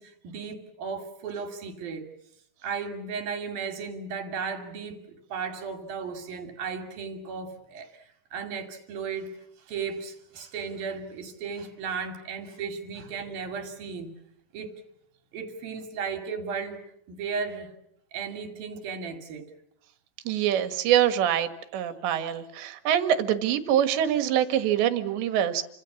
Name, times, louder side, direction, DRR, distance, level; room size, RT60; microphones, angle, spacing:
voice 1, 0.0-2.1 2.6-7.9 8.3-9.3 9.7-14.1 14.5-14.7 15.3-16.8 17.1-17.7 18.1-19.5, right 5 dB, 55° right, 4.2 m, -35 dB
voice 2, 20.3-25.6, right 10 dB, 75° right, 3.9 m, -24 dB
30.0 x 26.0 x 7.2 m
omnidirectional pair, 5.2 m